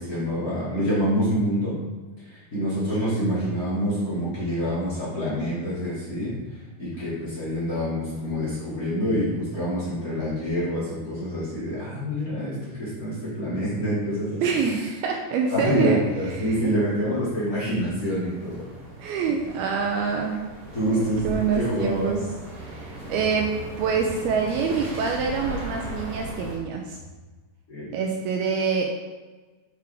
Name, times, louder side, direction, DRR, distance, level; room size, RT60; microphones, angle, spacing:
voice 1, 0.0-1.8 2.2-14.4 15.5-18.6 20.7-21.2 21.5-22.2 27.7-27.9, equal, 30° left, -9 dB, 1.8 m, -26 dB
voice 2, 14.4-16.7 19.0-20.5 20.9-22.3 22.6-27.0 27.9-28.9, right 6 dB, 85° right, 1 dB, 2.2 m, -26 dB
sound 1, 15.0-26.6, equal, 50° right, 3.0 m, -38 dB
6.7 x 6.6 x 3.4 m, 1.3 s
omnidirectional pair, 5.0 m